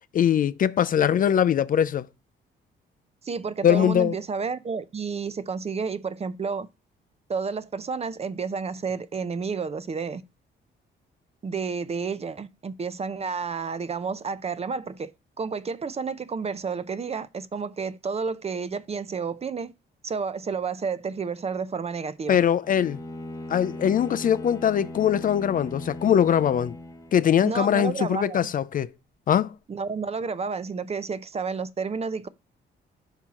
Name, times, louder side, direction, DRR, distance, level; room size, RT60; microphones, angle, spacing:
voice 1, 0.1-2.1 3.6-4.2 22.3-23.0 23.5-26.8 27.1-28.9 29.3-29.5, left 9 dB, 45° left, 0.4 m, -22 dB
voice 2, 3.2-6.7 7.3-10.2 11.4-15.1 15.4-19.7 20.0-22.4 27.4-28.5 29.7-32.3, right 5 dB, 30° right, 0.6 m, -31 dB
Bowed string instrument, 22.6-27.5, left 1 dB, 15° left, 0.9 m, -39 dB
5.7 x 4.5 x 3.7 m
cardioid pair, 90°, 20 cm